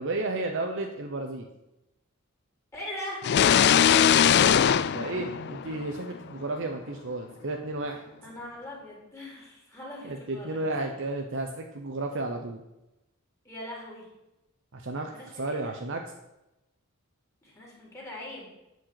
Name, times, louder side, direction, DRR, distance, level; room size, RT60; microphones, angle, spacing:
voice 1, 0.0-1.5 4.8-8.0 10.0-12.6 14.7-16.0, right 2 dB, 55° right, 3 dB, 0.9 m, -33 dB
voice 2, 2.7-3.3 8.2-11.0 13.4-14.1 15.1-15.7 17.4-18.5, left 1 dB, 15° left, -3 dB, 3.6 m, -41 dB
sound 1, 3.2-6.0, left 9 dB, 50° left, 0.3 m, -21 dB
10.5 x 5.3 x 7.7 m, 0.94 s
head